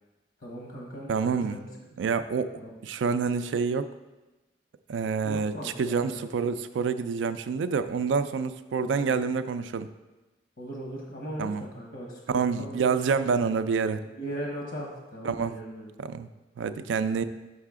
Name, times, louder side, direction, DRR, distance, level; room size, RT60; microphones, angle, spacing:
voice 1, 0.4-1.7 2.0-2.1 2.6-2.7 5.2-6.2 8.7-9.1 10.6-12.9 14.2-15.9, right 1 dB, 75° left, -1 dB, 1.1 m, -39 dB
voice 2, 1.1-1.6 2.0-2.5 2.8-3.9 4.9-9.9 11.4-11.6 12.3-14.0 15.2-15.6 16.0-16.3 16.6-17.2, right 5 dB, 85° right, 12 dB, 0.3 m, -27 dB
5.7 x 5.5 x 3.6 m, 1.1 s
head